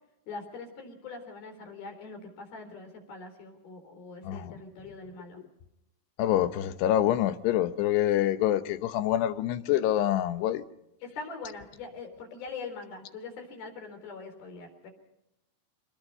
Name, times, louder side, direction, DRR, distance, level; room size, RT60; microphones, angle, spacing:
voice 1, 0.3-5.4 11.0-14.9, left 4 dB, 60° left, 5.5 m, -42 dB
voice 2, 4.2-4.5 6.2-10.6, left 12 dB, 80° left, 2.9 m, -26 dB
26.5 x 20.0 x 5.5 m
omnidirectional pair, 4.9 m